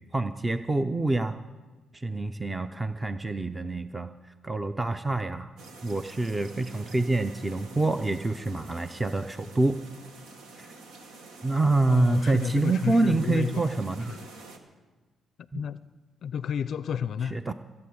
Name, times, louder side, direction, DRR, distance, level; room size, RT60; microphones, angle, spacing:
voice 1, 0.1-1.4 1.9-4.1 4.4-5.5 5.8-9.8 10.6-10.7 11.4-14.2 15.5-15.6 17.2-17.5, right 2 dB, 15° right, 9 dB, 0.6 m, -26 dB
sound 1, 5.6-14.6, right 3 dB, 85° right, 1.8 m, -47 dB
voice 2, 11.9-13.7 14.1-14.3 15.4-15.8 16.2-17.4, left 7 dB, 60° left, 16 dB, 0.4 m, -31 dB
20.5 x 8.7 x 7.9 m, 1.3 s
cardioid pair, 90°, 0 cm